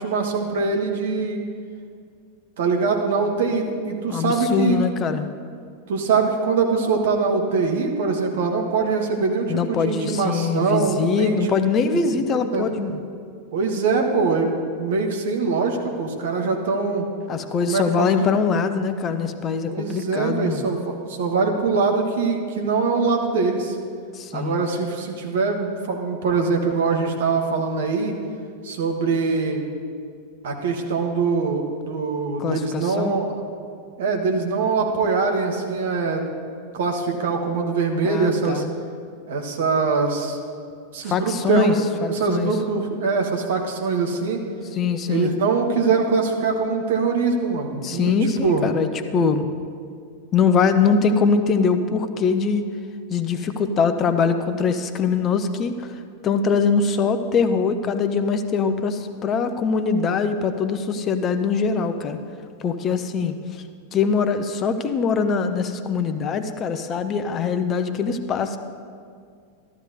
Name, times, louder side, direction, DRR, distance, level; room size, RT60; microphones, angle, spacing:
voice 1, 0.0-1.4 2.6-4.8 5.9-11.4 12.5-12.7 13.5-14.5 14.8-17.1 17.7-18.3 19.7-23.8 24.3-28.1 28.6-29.6 30.4-33.4 34.0-36.2 36.7-38.6 39.3-40.4 40.9-41.8 42.1-44.4 45.1-48.7, right 4 dB, 55° right, 2 dB, 1.3 m, -23 dB
voice 2, 4.1-5.3 9.5-13.0 17.3-20.7 24.1-24.6 32.4-33.2 38.0-38.7 41.0-41.8 42.0-42.5 44.7-45.3 47.8-49.5 50.3-52.7 53.1-62.2 62.6-63.6 63.9-68.6, left 5 dB, 30° left, 9 dB, 0.6 m, -22 dB
13.0 x 12.5 x 2.7 m, 2.2 s
figure-of-eight pair, 90°, 0 cm